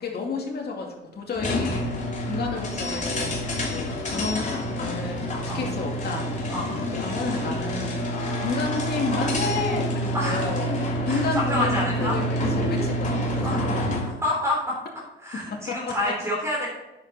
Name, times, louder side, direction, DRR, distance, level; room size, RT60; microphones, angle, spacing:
voice 1, 0.0-1.9 2.2-6.3 6.8-10.7 11.1-14.1 15.3-16.2, left 4 dB, 55° left, 0 dB, 2.5 m, -31 dB
sound 1, 1.3-14.2, equal, 40° left, 3.0 m, -27 dB
voice 2, 6.5-6.8 10.1-10.5 11.1-11.2 11.5-12.2 13.4-13.6 14.2-14.8 15.2-16.7, left 1 dB, 15° right, -5 dB, 3.6 m, -27 dB
9.7 x 7.1 x 4.2 m, 0.99 s
cardioid pair, 90°, 20 cm